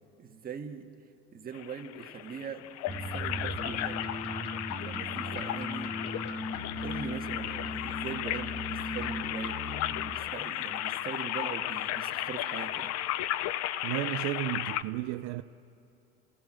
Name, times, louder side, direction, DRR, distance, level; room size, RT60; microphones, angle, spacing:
voice 1, 0.2-0.9 1.3-2.8 3.1-4.0 4.8-6.0 6.8-12.9, right 6 dB, 30° right, 1.8 m, -41 dB
sound 1, 1.5-14.8, left 13 dB, 55° left, 0.7 m, -35 dB
sound 2, 2.9-10.1, left 1 dB, 20° left, 2.1 m, -38 dB
voice 2, 13.8-15.4, right 16 dB, 65° right, 0.7 m, -33 dB
28.5 x 17.5 x 6.4 m
supercardioid pair, 115°, 31 cm